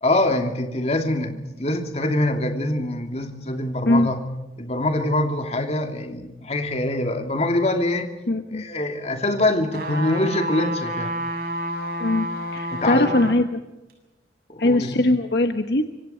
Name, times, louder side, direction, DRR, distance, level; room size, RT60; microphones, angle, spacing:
voice 1, 0.0-4.2 4.6-8.1 8.5-11.1 12.7-13.1 14.5-15.0, left 1 dB, 35° left, 5 dB, 2.8 m, -24 dB
voice 2, 8.3-8.7 12.0-13.6 14.6-15.8, left 1 dB, 60° left, 7 dB, 1.2 m, -21 dB
sound 1, 9.7-13.4 13.9-14.0, right 1 dB, 55° right, 7.2 m, -29 dB
26.0 x 24.5 x 4.5 m, 1.0 s
head